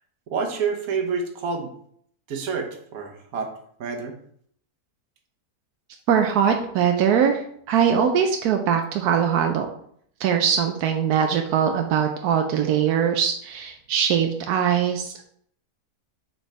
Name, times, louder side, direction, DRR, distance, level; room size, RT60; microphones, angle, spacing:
voice 1, 0.3-1.7 2.3-3.5 3.8-4.2, right 5 dB, 70° right, 4 dB, 1.4 m, -28 dB
voice 2, 6.1-9.7 10.2-15.2, right 8 dB, 90° right, 4 dB, 1.2 m, -21 dB
6.5 x 4.8 x 3.3 m, 0.65 s
omnidirectional pair, 1.6 m